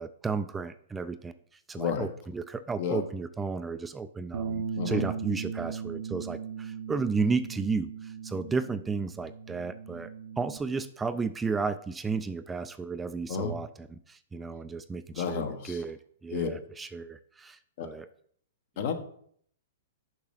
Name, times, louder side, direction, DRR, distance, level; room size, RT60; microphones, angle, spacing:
voice 1, 0.0-1.3 1.7-18.1, right 4 dB, 10° right, 11 dB, 0.4 m, -33 dB
voice 2, 1.8-2.1 2.8-3.0 4.8-5.1 13.3-13.6 15.1-15.8 16.3-16.5 17.8-17.9 18.8-18.9, left 6 dB, 55° left, 7 dB, 1.3 m, -31 dB
Bass guitar, 4.3-10.6, right 6 dB, 70° right, 0.8 m, -38 dB
6.8 x 5.3 x 5.8 m, 0.62 s
hypercardioid pair, 125°, 0 cm